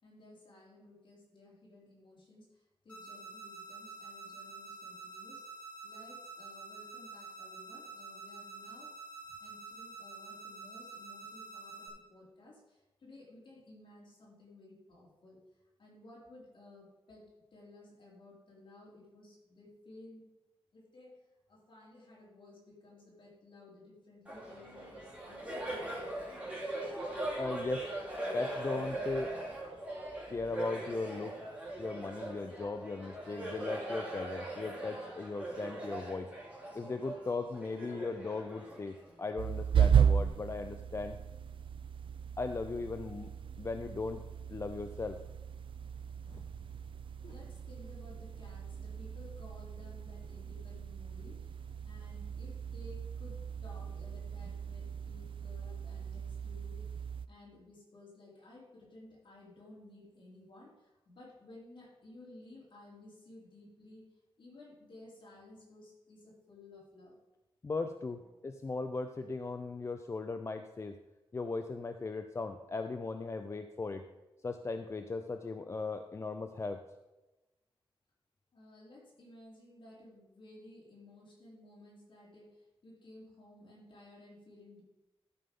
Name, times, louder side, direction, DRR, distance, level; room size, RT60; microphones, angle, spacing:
voice 1, 0.0-5.5 5.8-9.0 9.4-15.4 15.8-17.2 17.5-20.2 20.7-21.2 21.5-26.6 47.2-51.5 51.9-56.8 57.3-64.1 64.4-67.2 68.2-68.3 78.5-84.8, left 2 dB, 55° left, -5 dB, 3.8 m, -56 dB
sound 1, 2.9-11.9, right 3 dB, 15° left, 3.4 m, -48 dB
Laughter, 24.2-39.2, right 1 dB, 10° right, 3.7 m, -41 dB
voice 2, 27.4-27.9 28.3-29.4 30.3-31.3 31.8-36.3 36.7-41.2 42.4-43.3 43.6-44.2 44.5-45.2 46.3-46.4 67.6-71.0 71.3-74.0 74.4-76.8, left 3 dB, 30° left, 7 dB, 0.4 m, -38 dB
sound 2, 39.4-57.3, right 8 dB, 60° right, 0.4 m, -35 dB
13.0 x 5.5 x 5.4 m, 1.0 s
wide cardioid pair, 180°, 10 cm